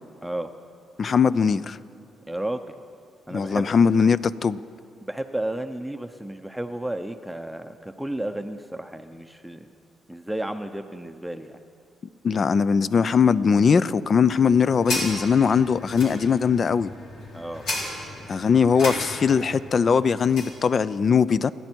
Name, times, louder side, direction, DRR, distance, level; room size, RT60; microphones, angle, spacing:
voice 1, 1.0-1.8 3.3-4.6 12.2-16.9 18.3-21.5, left 6 dB, 45° left, 0.5 m, -20 dB
voice 2, 2.3-2.7 3.3-3.7 5.1-9.7 10.1-11.6 17.3-17.6, right 1 dB, 5° right, 0.7 m, -32 dB
sound 1, 14.0-20.6, left 1 dB, 80° left, 4.3 m, -35 dB
29.5 x 10.5 x 4.6 m
cardioid pair, 90°, 0 cm